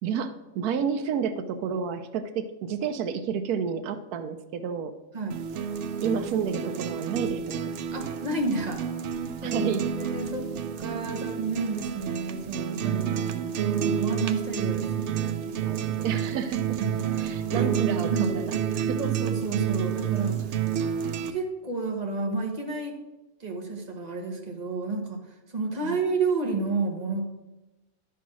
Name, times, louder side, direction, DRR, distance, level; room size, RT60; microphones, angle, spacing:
voice 1, 0.0-4.9 6.0-7.7 9.4-9.9 12.9-13.6 16.0-16.8 17.2-19.0 25.8-26.0, right 7 dB, 85° right, 10 dB, 1.1 m, -30 dB
sound 1, 5.3-21.3, right 8 dB, 65° right, 0.8 m, -29 dB
voice 2, 7.9-8.8 9.4-9.7 10.0-10.5 10.8-13.2 13.8-16.2 16.8-17.7 18.1-18.3 19.0-20.6 21.3-23.0 23.4-27.2, right 3 dB, 30° right, 2 dB, 1.4 m, -31 dB
11.0 x 4.6 x 6.1 m, 1.0 s
omnidirectional pair, 1.6 m